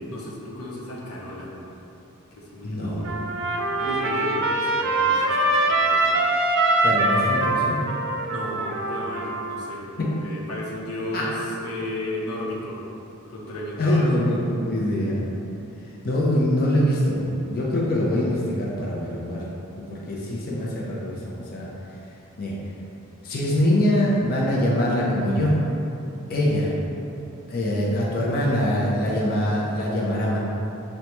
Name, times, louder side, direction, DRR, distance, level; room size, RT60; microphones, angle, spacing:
voice 1, 0.0-1.5 2.4-3.1 3.8-6.3 8.2-9.8 10.2-12.8 13.3-14.3, left 1 dB, 85° left, -4 dB, 0.7 m, -34 dB
voice 2, 2.6-3.2 6.8-7.8 10.0-10.1 11.1-11.2 13.8-15.3 16.0-19.4 19.8-21.7 22.4-22.6 23.2-25.5 26.3-26.7 27.5-30.4, left 1 dB, 45° left, -5 dB, 0.5 m, -23 dB
Trumpet, 3.0-9.7, right 2 dB, 60° right, 0.4 m, -23 dB
6.4 x 2.2 x 2.9 m, 2.9 s
head